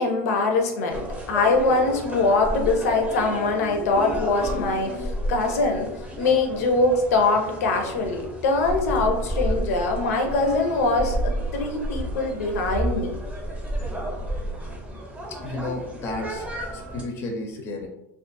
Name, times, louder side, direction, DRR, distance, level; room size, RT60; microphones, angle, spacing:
voice 1, 0.0-5.9 6.2-13.1, left 3 dB, 85° left, 3 dB, 0.5 m, -23 dB
sound 1, 0.9-17.0, right 1 dB, 15° right, 0.6 m, -31 dB
voice 2, 15.3-16.5 16.7-17.9, left 2 dB, 30° left, 2 dB, 0.4 m, -32 dB
2.4 x 2.3 x 2.5 m, 0.89 s
supercardioid pair, 135°, 8 cm